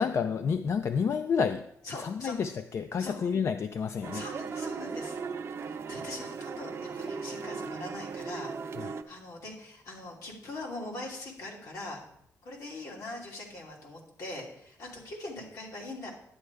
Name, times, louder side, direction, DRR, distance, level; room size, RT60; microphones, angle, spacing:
voice 1, 0.0-1.7 2.0-4.3 8.8-8.9, left 6 dB, 50° left, 9 dB, 0.4 m, -29 dB
voice 2, 1.8-2.3 3.0-3.2 4.1-5.2 5.6-12.0 12.4-16.1, left 2 dB, 75° left, -3 dB, 2.8 m, -42 dB
sound 1, 4.0-9.0, right 5 dB, 50° right, 0.6 m, -37 dB
11.0 x 9.5 x 3.4 m, 0.72 s
cardioid pair, 125°, 6 cm